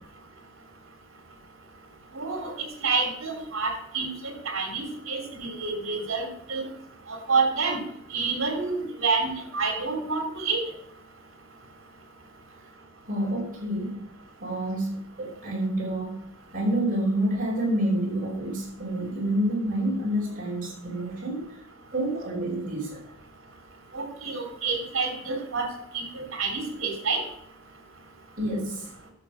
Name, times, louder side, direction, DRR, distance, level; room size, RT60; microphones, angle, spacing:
voice 1, 2.1-2.5 2.8-4.1 4.5-6.6 7.3-7.8 8.1-10.6 23.9-25.7 25.9-27.2, right 4 dB, 70° right, 4 dB, 3.4 m, -28 dB
voice 2, 13.1-14.0 14.4-16.2 16.5-21.4 21.9-23.0 28.4-28.9, right 1 dB, 40° right, -5 dB, 5.5 m, -28 dB
11.0 x 7.5 x 6.0 m, 0.74 s
head